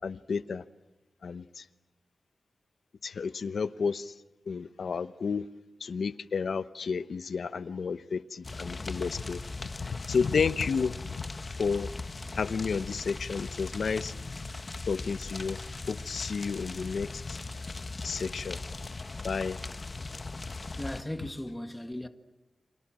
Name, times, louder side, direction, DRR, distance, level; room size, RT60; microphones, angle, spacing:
voice 1, 0.0-0.6 1.2-1.6 3.0-4.1 4.5-5.5 5.8-11.2 11.6-11.9 12.4-14.1 14.9-15.6 15.9-17.4 18.0-18.6 19.2-19.6, left 5 dB, 70° left, 0.9 m, -31 dB
sound 1, 8.4-21.0, left 3 dB, 35° left, 1.1 m, -39 dB
voice 2, 20.8-22.1, left 1 dB, 10° left, 1.7 m, -37 dB
30.0 x 26.0 x 7.6 m
wide cardioid pair, 125°, 0 cm